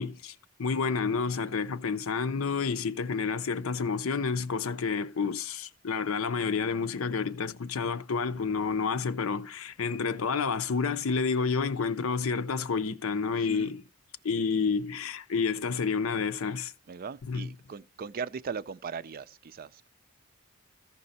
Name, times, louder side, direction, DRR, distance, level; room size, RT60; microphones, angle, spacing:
voice 1, 0.0-13.8 14.2-16.7 17.3-17.5, left 5 dB, 80° left, 0.6 m, -29 dB
voice 2, 13.4-13.7 16.9-19.9, right 6 dB, 45° right, 0.4 m, -39 dB
14.5 x 5.3 x 4.1 m
head